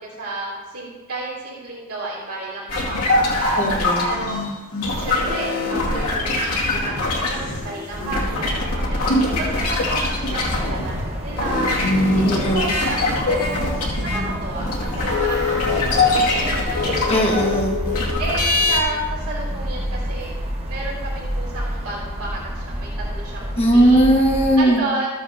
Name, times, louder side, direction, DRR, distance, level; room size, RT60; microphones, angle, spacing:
voice 1, 0.0-3.6 4.0-4.4 5.0-8.5 8.9-11.8 12.2-13.7 14.0-16.9 17.3-17.4 18.2-20.3 20.7-23.5 23.7-24.0 24.6-25.1, right 2 dB, 75° right, -6 dB, 3.0 m, -31 dB
sound 1, 2.7-11.0 11.3-18.8, left 2 dB, 85° left, 2.4 m, -22 dB
voice 2, 3.6-4.1 12.2-12.7 17.1-17.8 23.6-24.9, right 1 dB, 25° left, -2 dB, 1.6 m, -18 dB
sound 2, 7.9-24.6, equal, 30° right, 1.3 m, -30 dB
14.0 x 9.2 x 2.8 m, 1.3 s
head